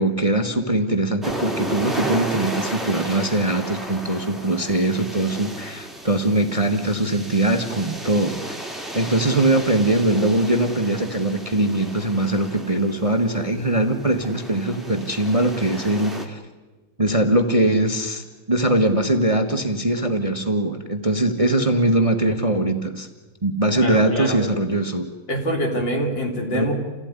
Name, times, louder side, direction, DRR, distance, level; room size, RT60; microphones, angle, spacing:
voice 1, 0.0-8.6 8.9-16.4 17.0-23.1 23.4-25.1 26.5-26.7, right 1 dB, 20° right, 7 dB, 1.2 m, -21 dB
sound 1, 1.2-16.3, right 1 dB, ahead, 2.5 m, -33 dB
voice 2, 23.7-24.4 25.3-26.7, equal, 75° left, 2 dB, 4.4 m, -25 dB
29.0 x 16.5 x 9.7 m, 1.2 s
omnidirectional pair, 2.1 m